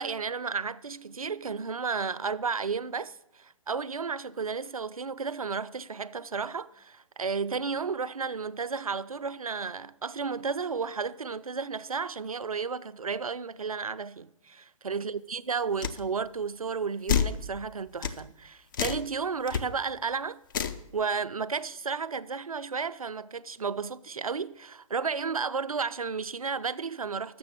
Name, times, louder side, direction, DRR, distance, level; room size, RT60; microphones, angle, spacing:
voice 1, 0.0-20.4 20.9-27.4, right 5 dB, 85° right, 0.4 m, -33 dB
sound 1, 15.8-16.0 17.1-17.4 18.0-18.2 18.7-19.1 19.5-19.6 20.5-20.8, left 7 dB, 35° left, 0.5 m, -27 dB
6.8 x 6.6 x 7.7 m
figure-of-eight pair, 130°, 18 cm